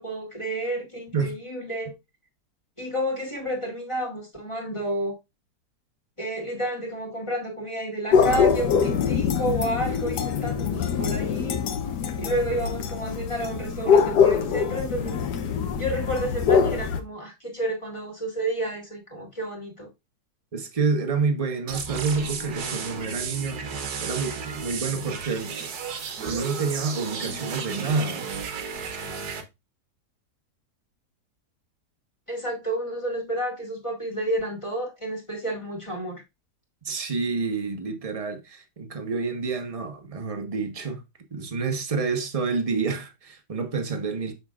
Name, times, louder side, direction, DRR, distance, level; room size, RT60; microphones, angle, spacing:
voice 1, 0.0-2.0 2.8-5.2 6.2-11.6 12.2-15.2 15.7-19.9 32.3-36.2, right 1 dB, 20° left, 1.9 m, -30 dB
sound 1, 8.1-17.0, left 6 dB, 80° left, 1.4 m, -23 dB
voice 2, 20.5-23.6 24.0-25.5 26.3-28.3 36.8-41.0 41.3-44.3, right 4 dB, 25° right, 0.9 m, -28 dB
sound 2, 21.7-29.4, right 6 dB, 70° right, 1.5 m, -33 dB
6.6 x 6.0 x 2.4 m
omnidirectional pair, 1.7 m